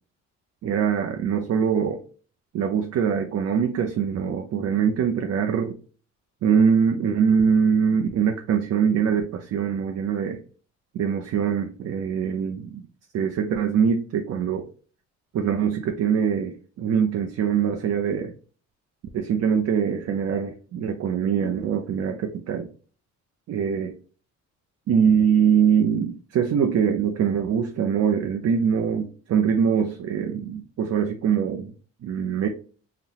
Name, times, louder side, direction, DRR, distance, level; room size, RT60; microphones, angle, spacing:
voice 1, 0.6-2.0 2.5-5.8 6.4-10.4 10.9-12.8 13.1-14.6 15.3-18.3 19.1-22.7 23.5-24.0 24.9-31.7 32.0-32.5, right 7 dB, 60° right, 3 dB, 0.5 m, -23 dB
3.9 x 2.1 x 2.8 m, 0.39 s
cardioid pair, 90°, 30 cm